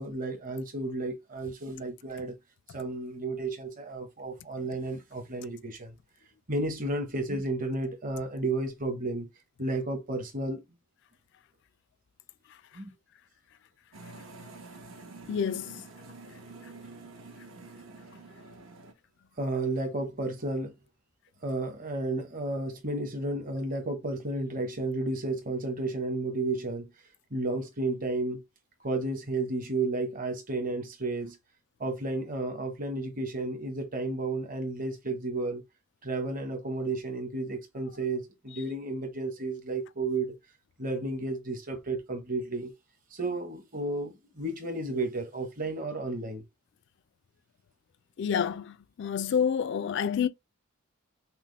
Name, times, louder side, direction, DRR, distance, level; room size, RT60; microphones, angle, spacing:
voice 1, 0.0-2.3 2.7-5.9 6.5-9.3 9.6-10.6 12.7-12.9 19.4-20.7 21.4-26.9 27.3-28.4 28.8-31.4 31.8-35.6 36.0-40.3 40.8-42.7 43.1-46.4, right 2 dB, 40° right, 1.0 m, -32 dB
sound 1, 13.9-18.9, right 3 dB, 75° right, 0.9 m, -48 dB
voice 2, 15.3-15.8 48.2-50.3, left 7 dB, 60° left, 0.3 m, -28 dB
5.8 x 2.1 x 3.3 m
head